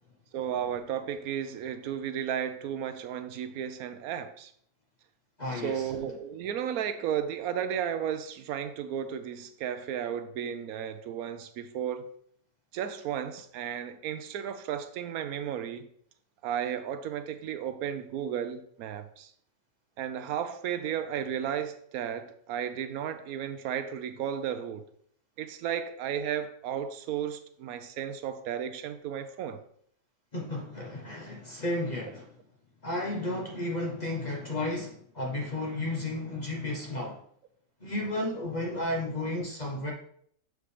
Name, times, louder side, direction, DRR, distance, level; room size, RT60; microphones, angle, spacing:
voice 1, 0.3-4.5 5.6-12.1 12.7-15.9 16.4-19.3 20.0-24.8 25.4-29.6, right 9 dB, 80° right, 1.0 m, -34 dB
voice 2, 5.4-5.9 30.3-32.3 32.8-37.2 37.8-39.9, left 1 dB, 35° left, 0.8 m, -33 dB
6.9 x 4.8 x 3.2 m
omnidirectional pair, 1.5 m